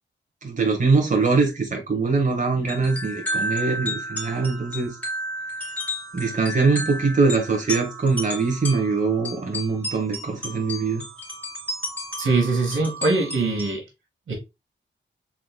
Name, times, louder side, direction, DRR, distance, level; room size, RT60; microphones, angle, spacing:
voice 1, 0.4-4.9 6.1-11.0, right 4 dB, 40° right, 1 dB, 1.5 m, -22 dB
sound 1, 2.6-13.7, equal, 5° left, 2.4 m, -32 dB
voice 2, 12.2-13.8 14.3-14.4, right 3 dB, 85° right, 0 dB, 2.1 m, -22 dB
4.6 x 4.1 x 2.2 m, 0.23 s
wide cardioid pair, 80°, 20 cm